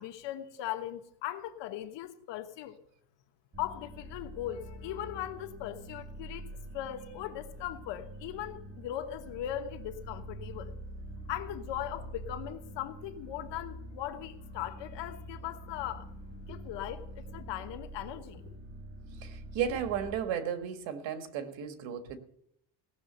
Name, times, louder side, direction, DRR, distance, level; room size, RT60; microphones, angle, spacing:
voice 1, 0.0-2.8 3.6-10.7 11.3-16.1 16.5-18.4, left 12 dB, 70° left, 1.2 m, -39 dB
sound 1, 3.5-20.1, right 1 dB, 30° right, 3.4 m, -45 dB
voice 2, 19.2-22.2, right 8 dB, 90° right, 1.6 m, -34 dB
17.5 x 6.7 x 7.9 m
cardioid pair, 145°, 44 cm